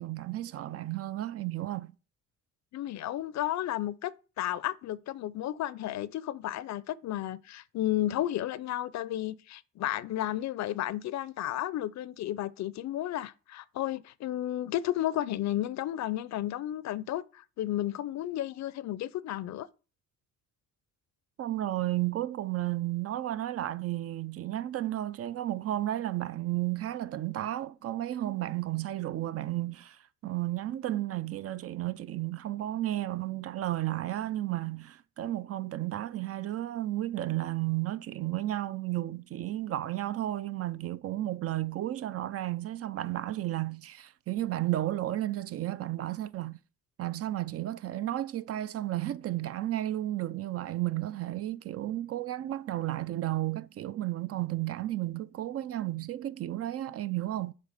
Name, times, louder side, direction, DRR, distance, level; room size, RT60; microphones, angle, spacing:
voice 1, 0.0-1.9 21.4-46.6 47.0-57.5, right 14 dB, 50° right, 0.4 m, -33 dB
voice 2, 2.7-4.1 4.4-19.7, left 13 dB, 65° left, 0.5 m, -33 dB
7.3 x 3.3 x 5.0 m
cardioid pair, 90°, 30 cm